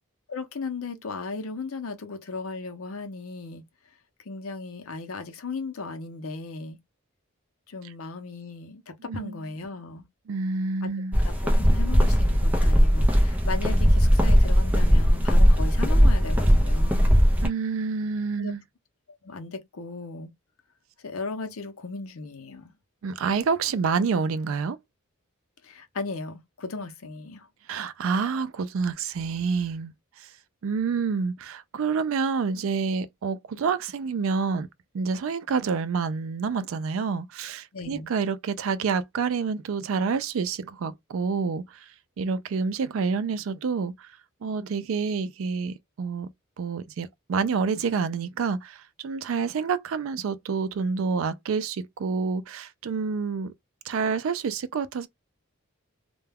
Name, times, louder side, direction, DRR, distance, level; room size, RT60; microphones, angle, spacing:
voice 1, 0.3-3.6 4.3-6.8 7.7-10.0 10.8-10.9 11.2-17.2 18.4-18.5 19.2-20.3 21.0-22.7 25.6-27.5 37.7-38.1, left 3 dB, 80° left, 0.6 m, -36 dB
voice 2, 9.1-9.4 10.3-11.2 17.4-18.6 23.0-24.8 27.7-30.3 30.6-34.7 34.9-41.9 42.2-44.1 44.4-46.3 46.6-53.5 53.8-55.1, right 5 dB, 70° right, 0.4 m, -28 dB
sound 1, 11.1-17.5, equal, 5° right, 0.4 m, -19 dB
2.2 x 2.2 x 3.3 m
head